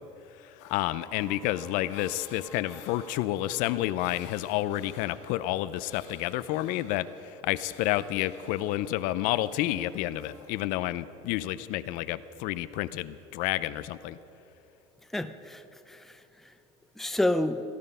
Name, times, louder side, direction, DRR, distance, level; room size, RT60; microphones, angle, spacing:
voice 1, 0.4-14.2, left 14 dB, 65° left, 15 dB, 0.5 m, -30 dB
sound 1, 0.6-10.5, left 4 dB, 90° left, 2.9 m, -52 dB
voice 2, 15.1-16.5 17.0-17.6, left 1 dB, ahead, 10 dB, 0.5 m, -30 dB
18.0 x 12.5 x 5.5 m, 2.9 s
cardioid pair, 130°, 15 cm